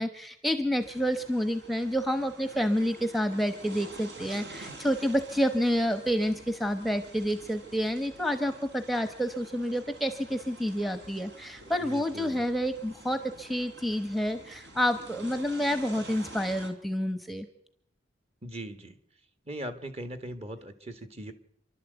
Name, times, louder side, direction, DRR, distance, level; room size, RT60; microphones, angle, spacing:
voice 1, 0.0-17.5, equal, ahead, 8 dB, 1.0 m, -29 dB
sound 1, 0.8-16.7, right 2 dB, 70° right, 3.7 m, -48 dB
voice 2, 11.8-12.4 18.4-19.0 19.5-21.3, right 1 dB, 35° right, 8 dB, 1.8 m, -39 dB
27.5 x 12.0 x 8.1 m, 0.72 s
head